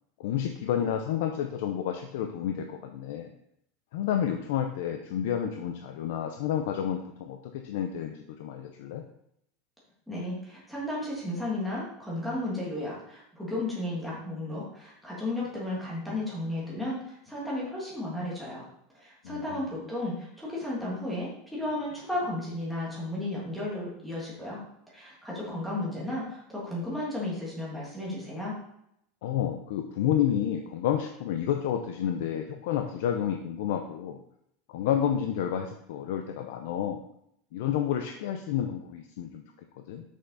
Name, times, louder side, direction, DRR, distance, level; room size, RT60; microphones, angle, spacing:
voice 1, 0.2-3.3 3.9-9.0 19.2-19.7 29.2-34.2 34.7-37.0 37.5-39.4 39.9-40.0, left 9 dB, 60° left, 5 dB, 0.5 m, -30 dB
voice 2, 10.1-18.6 18.9-24.6 24.9-28.6, left 1 dB, ahead, -6 dB, 1.8 m, -34 dB
6.4 x 5.6 x 4.1 m, 0.75 s
supercardioid pair, 180°, 0 cm